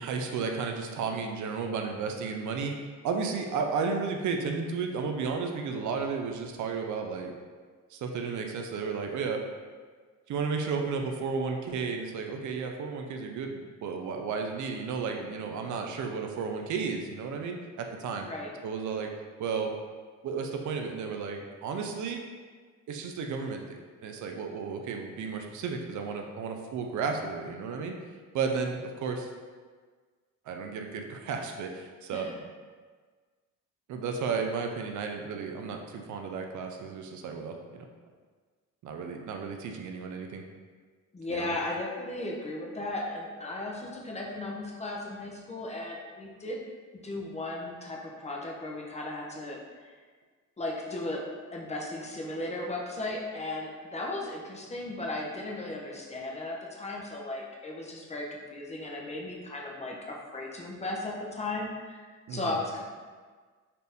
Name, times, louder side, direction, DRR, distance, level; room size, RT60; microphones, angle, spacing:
voice 1, 0.0-2.7 3.0-7.3 7.9-9.4 10.3-18.3 18.6-19.1 19.4-19.7 20.2-22.2 22.9-27.9 28.3-29.3 30.5-32.3 33.9-37.9 38.8-40.4 41.3-41.6 62.3-62.6, right 5 dB, 70° right, 3 dB, 0.5 m, -33 dB
voice 2, 18.2-18.5 32.1-32.3 41.1-46.6 47.0-50.0 50.6-51.2 51.5-62.8, left 2 dB, 20° left, -2 dB, 0.6 m, -36 dB
4.2 x 2.6 x 3.4 m, 1.5 s
cardioid pair, 120°, 31 cm